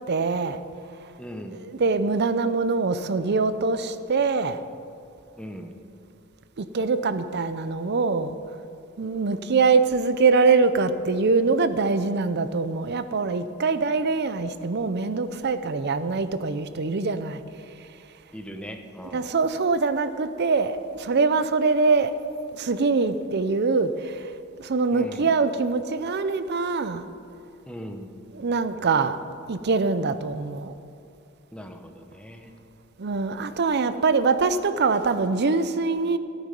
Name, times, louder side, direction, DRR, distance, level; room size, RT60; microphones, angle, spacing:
voice 1, 0.1-0.6 1.5-4.6 6.6-8.3 9.0-17.4 19.1-22.2 22.5-24.3 24.6-27.0 28.3-29.2 29.5-30.7 33.0-36.2, right 4 dB, 55° right, 12 dB, 0.6 m, -23 dB
voice 2, 1.2-1.6 5.4-5.7 18.3-19.3 24.9-25.3 27.7-28.1 31.5-32.5, equal, 5° left, 5 dB, 0.8 m, -39 dB
15.0 x 9.5 x 5.3 m, 2.6 s
head